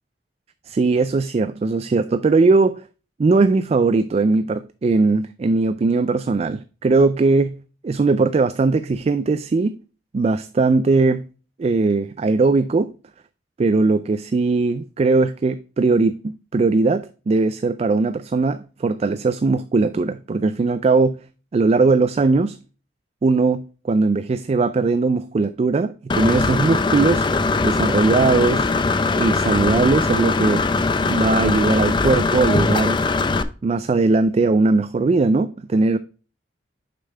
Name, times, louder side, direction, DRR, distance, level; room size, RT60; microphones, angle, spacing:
voice 1, 0.7-2.9 3.2-9.7 10.1-11.3 11.6-12.9 13.6-21.2 21.5-22.6 23.2-27.3 27.6-28.7 29.1-30.7 31.0-33.0 33.6-36.0, right 3 dB, 35° right, 0.3 m, -19 dB
Engine / Mechanisms, 26.1-33.4, left 3 dB, 25° left, 0.5 m, -20 dB
6.7 x 5.4 x 3.3 m
head